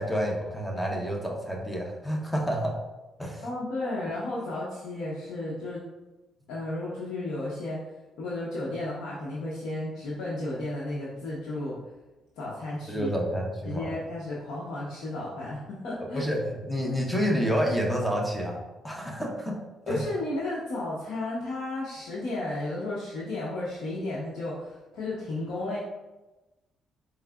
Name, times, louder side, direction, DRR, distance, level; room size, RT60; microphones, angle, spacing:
voice 1, 0.0-2.8 3.2-3.4 12.9-13.9 16.0-19.6 19.9-20.1, equal, 10° left, -1 dB, 0.9 m, -29 dB
voice 2, 3.4-5.8 6.5-7.8 8.2-11.8 12.4-13.1 13.6-16.2 19.9-25.8, left 2 dB, 85° left, -7 dB, 0.8 m, -33 dB
4.6 x 3.7 x 2.3 m, 1.1 s
cardioid pair, 90°, 0 cm